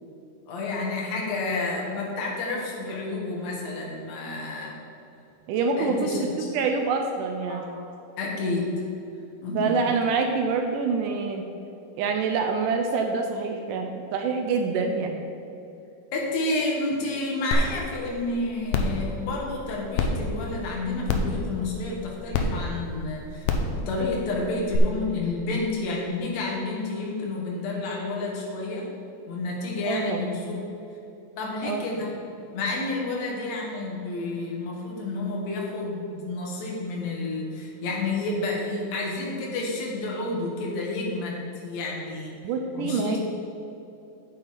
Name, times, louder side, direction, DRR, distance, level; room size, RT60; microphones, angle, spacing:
voice 1, 0.5-4.8 5.8-6.5 7.5-7.8 8.2-8.8 9.4-9.8 16.1-28.8 29.3-30.6 31.4-42.3 42.7-43.2, left 2 dB, 55° left, -2 dB, 2.6 m, -30 dB
voice 2, 5.5-7.6 9.5-11.5 11.9-15.2 29.8-30.3 31.6-31.9 42.4-43.2, right 4 dB, 75° right, 4 dB, 2.1 m, -26 dB
sound 1, 17.5-17.6 18.1-18.2 18.7-19.0 20.0-20.1 21.1-21.3 22.3-22.4 23.4-23.7 24.7-24.8, left 5 dB, 75° left, 2.2 m, -23 dB
9.2 x 8.5 x 4.2 m, 2.9 s
omnidirectional pair, 4.0 m